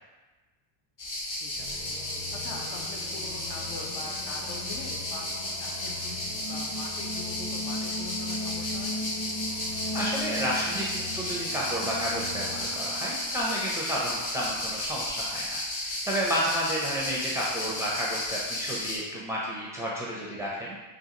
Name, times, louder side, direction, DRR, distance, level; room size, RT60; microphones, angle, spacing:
sound 1, 1.0-19.0, left 1 dB, 40° left, 1.1 m, -33 dB
voice 1, 1.3-2.0 2.3-5.3 5.6-8.9 17.7-17.8, left 4 dB, 60° left, 0 dB, 0.8 m, -43 dB
sound 2, 1.6-13.6, left 1 dB, 20° left, 0.8 m, -38 dB
voice 2, 9.9-20.8, equal, 5° right, -6 dB, 0.4 m, -31 dB
3.8 x 2.4 x 2.8 m, 1.2 s
supercardioid pair, 110°, 50 cm